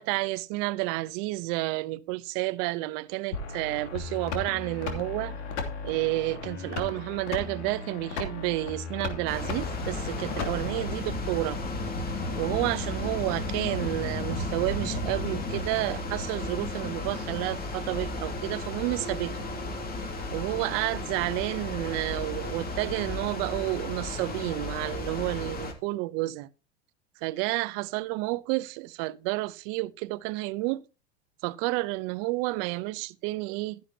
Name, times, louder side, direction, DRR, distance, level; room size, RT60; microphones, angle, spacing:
voice 1, 0.0-5.4 5.8-11.6 12.4-19.4 20.3-26.5 27.2-30.8 31.4-33.8, right 21 dB, 55° right, 0.8 m, -30 dB
sound 1, 3.3-10.9, left 4 dB, 80° left, 2.9 m, -36 dB
sound 2, 9.3-25.7, left 2 dB, 25° left, 2.6 m, -34 dB
12.5 x 11.0 x 2.8 m
hypercardioid pair, 105°, 34 cm